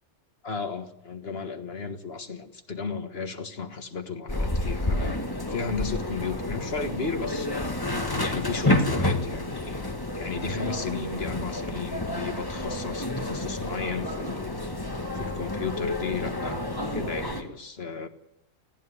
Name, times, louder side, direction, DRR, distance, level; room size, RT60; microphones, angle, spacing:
voice 1, 0.4-5.2 5.5-7.7 8.2-9.8 10.2-14.5 15.1-16.6 16.9-18.1, left 5 dB, 50° left, 8 dB, 1.8 m, -34 dB
sound 1, 4.3-17.4, left 1 dB, 15° left, 1.6 m, -30 dB
sound 2, 12.7-17.4, right 4 dB, 45° right, 1.8 m, -47 dB
19.0 x 15.0 x 9.8 m, 0.84 s
omnidirectional pair, 1.3 m